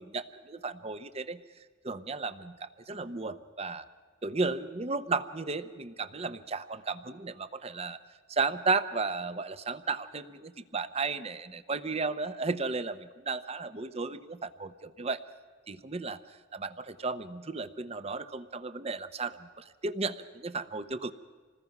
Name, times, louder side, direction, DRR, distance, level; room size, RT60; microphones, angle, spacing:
voice 1, 0.0-1.4 1.8-3.8 4.2-8.0 8.3-15.2 15.7-16.2 16.5-21.1, right 4 dB, 30° right, 13 dB, 0.8 m, -34 dB
26.5 x 20.0 x 5.9 m, 1.5 s
head